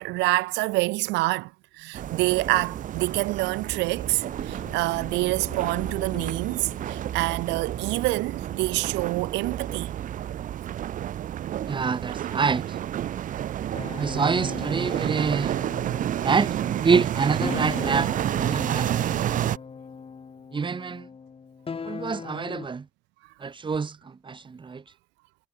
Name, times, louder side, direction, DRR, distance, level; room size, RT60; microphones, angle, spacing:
voice 1, 0.0-9.9, right 22 dB, 65° right, 3.7 m, -27 dB
sound 1, 1.9-19.6, right 11 dB, 40° right, 0.9 m, -30 dB
sound 2, 2.9-8.3, left 19 dB, 65° left, 7.7 m, -47 dB
voice 2, 11.7-12.8 14.0-15.6 16.2-16.6 16.8-18.1 18.4-19.1 20.5-21.1 21.9-22.8 23.4-24.0 24.2-24.9, right 5 dB, 25° right, 2.2 m, -26 dB
sound 3, 13.7-22.7, left 5 dB, 30° left, 4.0 m, -38 dB
hypercardioid pair, 70°, 20 cm